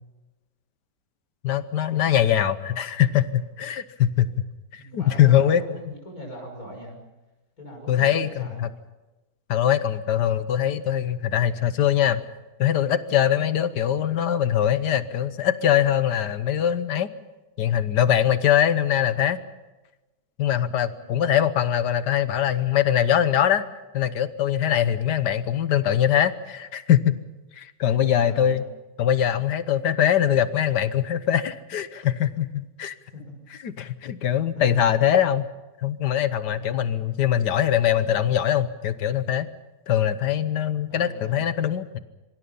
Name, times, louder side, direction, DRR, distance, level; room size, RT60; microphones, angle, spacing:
voice 1, 1.4-4.3 4.9-5.6 7.9-8.7 9.5-12.2 12.6-17.1 17.6-19.4 20.4-23.6 23.9-27.2 27.6-28.6 29.0-32.9 33.6-35.4 35.8-39.5 39.9-42.0, left 10 dB, 70° left, 13 dB, 1.6 m, -22 dB
voice 2, 4.8-7.0 7.6-8.6 20.8-21.3 27.8-28.7 33.1-33.4 34.5-34.8 36.5-37.0 40.9-41.5, equal, 55° left, 2 dB, 6.7 m, -41 dB
26.0 x 24.0 x 5.5 m, 1.1 s
omnidirectional pair, 1.9 m